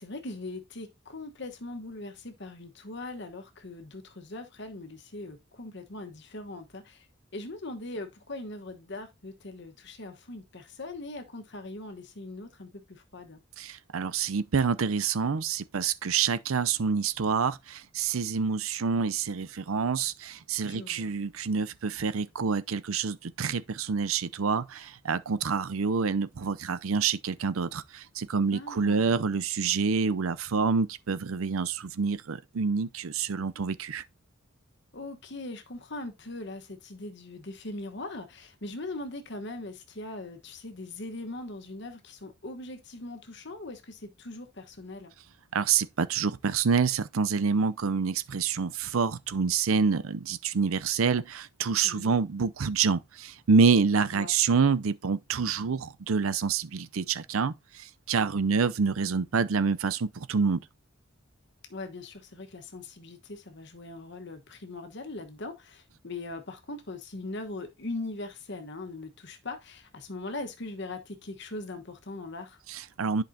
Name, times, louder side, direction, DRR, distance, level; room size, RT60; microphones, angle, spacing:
voice 1, 0.0-7.1 7.3-13.4 20.6-21.1 28.5-29.2 34.9-45.1 51.8-52.2 54.1-54.3 61.7-72.6, left 2 dB, 55° left, 1.2 m, -40 dB
voice 2, 13.6-34.0 45.5-57.5 58.1-60.6 72.7-73.2, right 5 dB, 85° right, 0.6 m, -27 dB
10.5 x 5.3 x 2.7 m
head